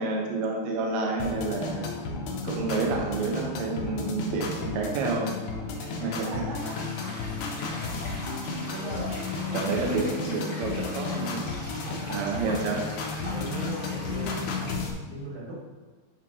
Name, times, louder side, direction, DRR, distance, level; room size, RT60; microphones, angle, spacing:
voice 1, 0.0-1.9 2.4-5.4 6.0-6.3 9.5-11.5 12.1-12.8, right 3 dB, 80° right, 0 dB, 1.6 m, -29 dB
sound 1, 1.2-14.9, left 4 dB, 70° left, 2.0 m, -33 dB
voice 2, 5.8-6.7 7.2-8.1 8.7-10.1 11.5-12.8 13.3-15.6, equal, 55° right, -6 dB, 3.2 m, -40 dB
sound 2, 6.5-14.7, left 1 dB, 90° left, 0.4 m, -41 dB
9.0 x 5.7 x 2.8 m, 1.4 s
omnidirectional pair, 4.3 m